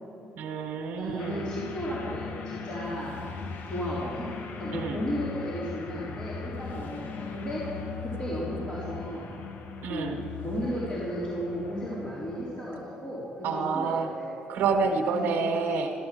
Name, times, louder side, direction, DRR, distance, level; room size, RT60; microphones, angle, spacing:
voice 1, 0.3-1.5 4.7-5.0 9.8-10.2 13.4-14.1 14.5-15.9, right 5 dB, 80° right, 2 dB, 1.3 m, -28 dB
voice 2, 1.0-3.2 3.7-4.3 4.6-7.6 8.0-9.3 9.9-14.3 15.0-15.2 15.5-15.6, equal, 25° left, -8 dB, 3.8 m, -34 dB
sound 1, 1.2-12.6, left 5 dB, 60° left, 1.3 m, -39 dB
13.5 x 13.0 x 7.7 m, 2.6 s
cardioid pair, 120°, 3 cm